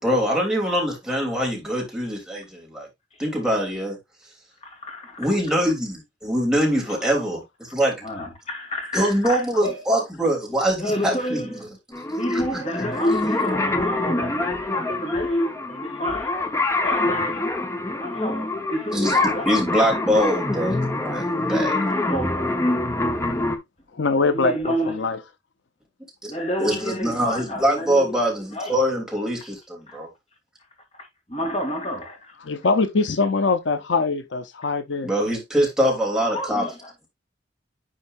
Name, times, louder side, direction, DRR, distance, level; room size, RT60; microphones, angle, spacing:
voice 1, 0.0-2.9 3.2-4.0 5.2-7.9 8.9-11.4 18.9-19.2 19.4-21.2 21.5-21.7 26.6-30.1 35.0-36.6, equal, 5° right, 3.0 m, -23 dB
voice 2, 4.6-5.3 8.0-9.8 10.8-11.7 12.2-17.5 18.0-19.6 21.8-22.6 24.2-25.1 26.3-28.8 29.9-30.0 31.3-32.3 34.6-34.7 36.2-37.1, equal, 35° left, 2.5 m, -30 dB
sound 1, 11.9-23.6, left 2 dB, 15° left, 0.9 m, -25 dB
voice 3, 23.9-25.2 32.4-35.1, left 4 dB, 75° left, 0.7 m, -23 dB
10.0 x 4.4 x 2.5 m
head